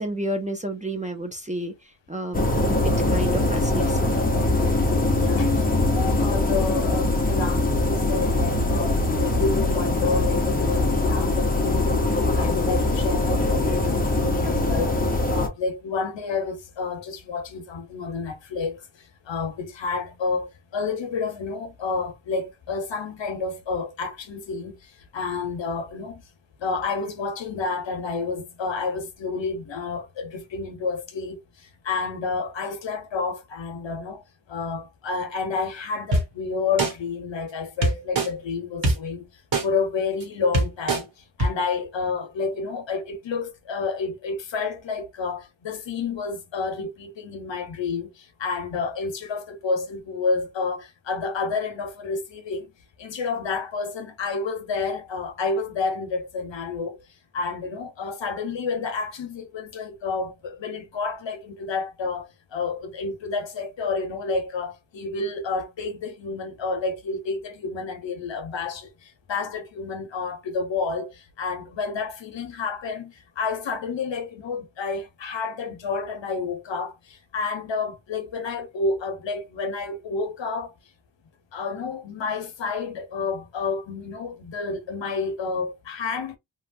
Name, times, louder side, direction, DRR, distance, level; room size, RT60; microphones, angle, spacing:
voice 1, 0.0-1.7 2.1-4.2, right 1 dB, 15° right, 0.5 m, -30 dB
sound 1, 2.3-15.5, left 2 dB, 20° left, 0.7 m, -22 dB
voice 2, 5.1-12.1 12.4-26.2 26.6-39.3 39.6-52.7 53.0-57.0 57.3-80.7 81.5-86.4, left 4 dB, 65° left, 0.9 m, -30 dB
sound 2, 36.1-36.2 36.8-36.9 37.8-38.3 38.8-38.9 39.5-39.6 40.2-40.3 40.5-41.0 41.4-41.5, right 2 dB, 50° right, 1.2 m, -21 dB
3.1 x 2.3 x 2.5 m
wide cardioid pair, 125°, 47 cm